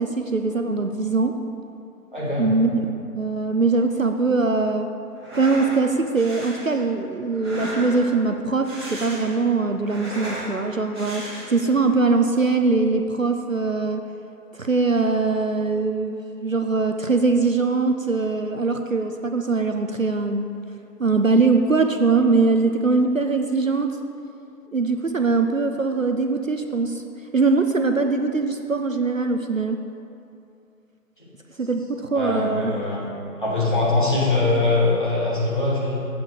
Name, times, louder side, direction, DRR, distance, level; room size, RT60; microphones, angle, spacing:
voice 1, 0.0-1.3 2.4-2.8 3.1-4.9 5.3-14.0 14.5-20.5 21.0-24.0 24.7-27.0 27.3-29.8 31.6-32.7, right 3 dB, 55° right, 6 dB, 0.5 m, -22 dB
voice 2, 2.1-2.5 32.1-33.1 33.4-35.9, left 2 dB, 30° left, -6 dB, 1.7 m, -22 dB
sound 1, 5.1-5.8 6.1-6.7 7.3-8.2 8.5-9.4 9.7-10.5 10.9-11.7, right 1 dB, 15° right, 1.9 m, -35 dB
7.7 x 4.9 x 6.3 m, 2.5 s
figure-of-eight pair, 180°, 47 cm